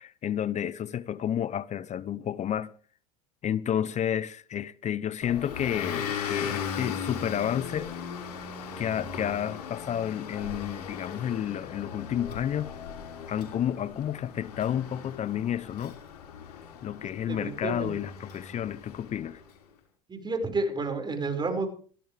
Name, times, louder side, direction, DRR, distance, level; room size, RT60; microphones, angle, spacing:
voice 1, 0.0-2.7 3.4-7.9 8.8-12.7 13.3-16.0 16.8-19.4, left 10 dB, 35° left, 0.9 m, -31 dB
Motor vehicle (road) / Engine, 5.2-19.4, left 6 dB, 85° left, 5.7 m, -38 dB
voice 2, 17.1-17.9 20.1-21.7, right 3 dB, 20° right, 5.9 m, -30 dB
18.0 x 15.5 x 3.6 m
hypercardioid pair, 95°, 20 cm